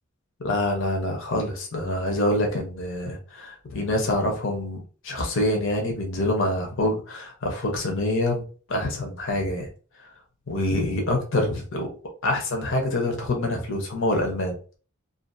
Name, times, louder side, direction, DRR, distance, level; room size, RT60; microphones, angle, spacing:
voice 1, 0.4-8.4 8.7-9.7 10.5-11.9 12.2-14.5, left 1 dB, 70° left, 2 dB, 0.8 m, -26 dB
2.5 x 2.5 x 2.6 m, 0.37 s
head